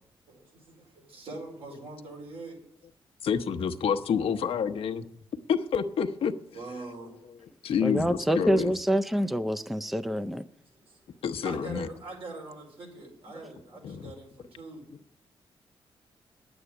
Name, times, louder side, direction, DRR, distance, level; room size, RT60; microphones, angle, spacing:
voice 1, 0.3-2.6 6.5-7.1 10.6-11.0 11.4-14.8, right 2 dB, 80° right, 4.8 m, -43 dB
voice 2, 3.2-5.1 5.5-6.3 7.6-8.7 11.2-11.9 13.8-14.0, left 7 dB, 85° left, 0.9 m, -28 dB
voice 3, 7.8-10.4, equal, ahead, 0.4 m, -26 dB
10.0 x 8.1 x 9.8 m
wide cardioid pair, 130°, 9 cm